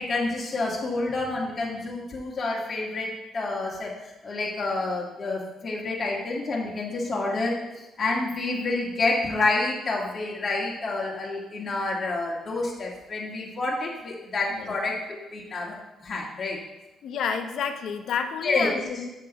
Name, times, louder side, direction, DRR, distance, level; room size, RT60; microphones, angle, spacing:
voice 1, 0.0-3.9 4.2-16.6 18.4-18.7, left 3 dB, 40° left, -3 dB, 1.6 m, -28 dB
voice 2, 17.0-19.1, left 6 dB, 70° left, 7 dB, 0.7 m, -30 dB
8.4 x 6.5 x 3.0 m, 1.0 s
cardioid pair, 90°, 0 cm